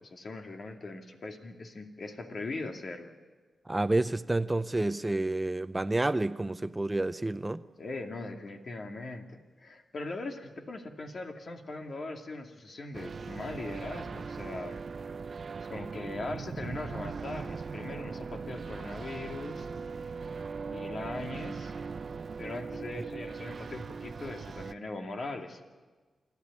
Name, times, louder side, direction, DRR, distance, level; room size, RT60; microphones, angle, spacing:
voice 1, 0.0-3.1 7.8-14.8 15.6-19.7 20.7-21.9 22.4-25.6, left 2 dB, 60° left, 2.4 m, -40 dB
voice 2, 3.7-7.6, right 2 dB, 20° right, 0.6 m, -29 dB
sound 1, 12.9-24.7, right 5 dB, 60° right, 0.7 m, -39 dB
27.5 x 12.0 x 9.7 m
cardioid pair, 60°, 0 cm